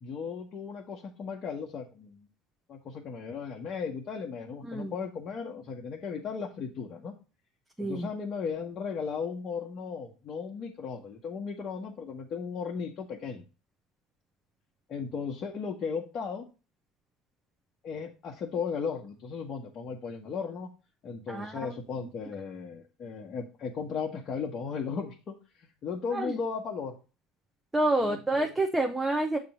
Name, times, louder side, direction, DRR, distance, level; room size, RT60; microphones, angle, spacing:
voice 1, 0.0-2.3 2.7-7.1 7.8-13.4 14.9-16.5 17.8-20.7 21.0-27.0 28.0-28.5, left 5 dB, 45° left, -2 dB, 1.0 m, -36 dB
voice 2, 4.6-4.9 7.8-8.1 21.3-22.1 26.1-26.3 27.7-29.4, right 2 dB, 10° right, 3 dB, 0.8 m, -29 dB
6.9 x 2.9 x 5.3 m, 0.31 s
supercardioid pair, 100°, 0 cm